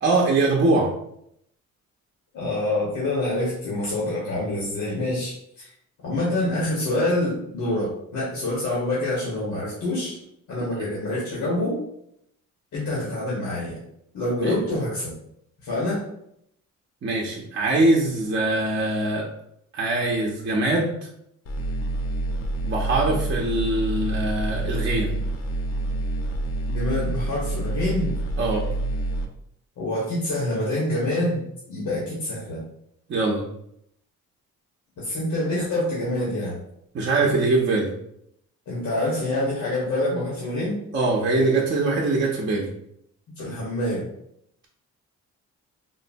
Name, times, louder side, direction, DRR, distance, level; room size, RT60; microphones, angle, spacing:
voice 1, 0.0-0.9 10.6-10.7 14.4-14.6 17.0-19.3 19.7-21.0 22.6-25.1 28.4-28.6 33.1-33.4 36.9-37.9 40.9-42.7, right 2 dB, 40° right, -2 dB, 0.6 m, -22 dB
voice 2, 2.3-5.7 6.0-10.2 10.5-11.8 12.7-13.8 14.1-15.1 15.6-16.1 26.7-28.1 29.8-32.6 35.0-36.6 38.7-40.8 43.4-44.1, left 1 dB, 75° left, -7 dB, 1.1 m, -26 dB
sound 1, 21.5-29.3, right 2 dB, 50° left, 0.6 m, -27 dB
3.7 x 2.0 x 2.6 m, 0.74 s
cardioid pair, 90°, 30 cm